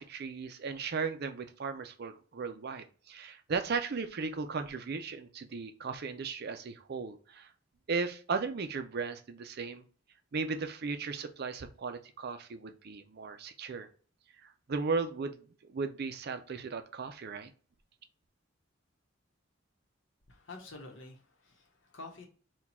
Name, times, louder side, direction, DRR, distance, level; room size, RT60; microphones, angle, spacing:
voice 1, 0.0-7.5 7.9-9.8 10.3-13.9 14.4-17.5, right 4 dB, 55° right, 8 dB, 0.5 m, -36 dB
voice 2, 20.3-22.3, left 2 dB, 70° left, 3 dB, 1.0 m, -48 dB
4.3 x 2.3 x 4.2 m, 0.40 s
head